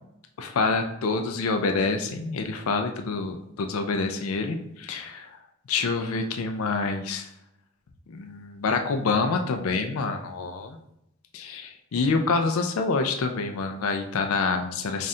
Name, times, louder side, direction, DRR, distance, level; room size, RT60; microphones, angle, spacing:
voice 1, 0.4-5.4 5.7-7.3 8.1-10.8 11.3-15.1, left 4 dB, 90° left, 5 dB, 0.4 m, -27 dB
3.6 x 2.5 x 4.1 m, 0.80 s
head